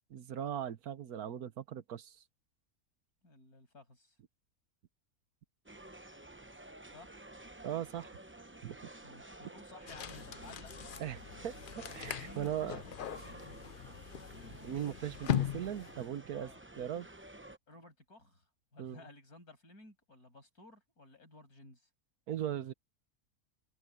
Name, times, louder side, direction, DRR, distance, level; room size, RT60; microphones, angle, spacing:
voice 1, 0.1-2.2 7.6-8.2 8.6-8.8 11.0-12.8 14.6-16.5 16.8-17.1 18.8-19.0 22.3-22.7, right 10 dB, 80° right, 1.5 m, -39 dB
voice 2, 3.2-4.2 6.9-7.2 9.0-10.7 12.2-13.6 16.3-16.6 17.7-21.9, left 2 dB, 80° left, 7.1 m, -56 dB
sound 1, 5.7-17.6, right 2 dB, 10° right, 0.6 m, -52 dB
sound 2, 9.9-16.1, left 9 dB, 55° left, 0.6 m, -40 dB
omnidirectional pair, 1.6 m